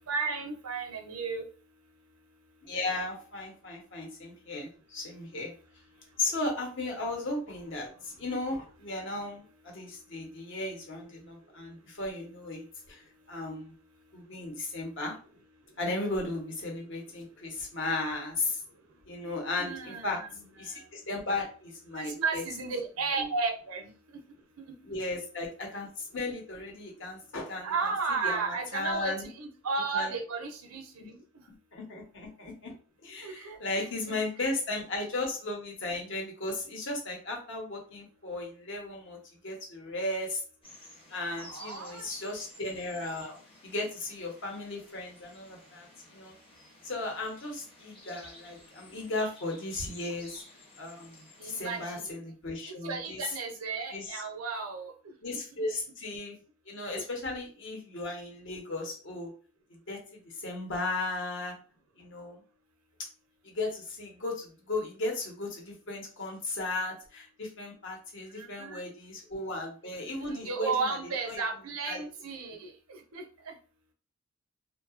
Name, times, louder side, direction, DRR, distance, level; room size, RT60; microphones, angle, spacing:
voice 1, 0.1-1.5 19.6-20.3 20.6-20.9 21.9-23.9 27.6-31.2 33.2-34.2 41.2-42.1 51.4-52.0 52.8-55.1 56.8-57.0 68.3-68.8 70.2-73.5, right 4 dB, 90° right, 4 dB, 0.6 m, -34 dB
voice 2, 2.7-5.5 6.2-13.7 14.1-15.2 15.8-18.6 19.1-20.2 20.6-22.4 23.2-23.3 24.8-29.3 29.9-30.1 31.0-31.1 31.7-32.7 33.0-40.4 41.1-43.4 43.6-45.9 46.1-46.3 46.8-50.4 50.8-53.3 53.9-54.2 55.2-56.4 56.7-59.3 59.9-61.6 62.0-62.4 63.4-71.0 71.3-71.4 71.9-72.0, left 2 dB, 60° left, 0 dB, 0.8 m, -36 dB
sound 1, 40.6-51.9, left 1 dB, 25° left, 0.7 m, -53 dB
2.7 x 2.2 x 2.4 m, 0.38 s
head